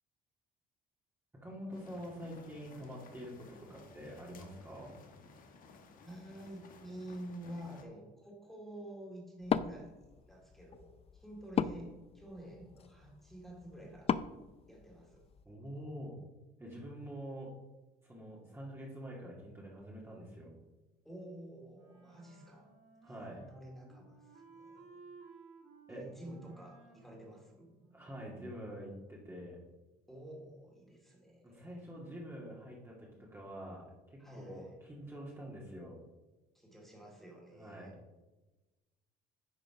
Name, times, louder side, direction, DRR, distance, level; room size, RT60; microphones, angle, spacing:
voice 1, 1.4-4.9 15.4-16.2 16.6-17.5 18.0-20.5 23.0-23.5 25.9-26.0 27.9-29.6 31.4-33.8 34.1-36.0 37.5-38.0, equal, 15° right, -4 dB, 2.3 m, -46 dB
sound 1, 1.7-7.8, left 4 dB, 55° left, 1.3 m, -57 dB
voice 2, 6.0-14.2 14.7-15.2 21.0-22.7 23.2-25.0 25.9-27.7 30.1-31.8 34.2-34.8 36.5-37.9, right 1 dB, ahead, -1 dB, 2.5 m, -49 dB
Wood, 9.4-15.5, left 8 dB, 35° left, 0.4 m, -38 dB
Wind instrument woodwind instrument, 21.7-28.3, right 4 dB, 85° right, 2.7 m, -58 dB
10.5 x 5.0 x 4.9 m, 1.1 s
cardioid pair, 110°, 17 cm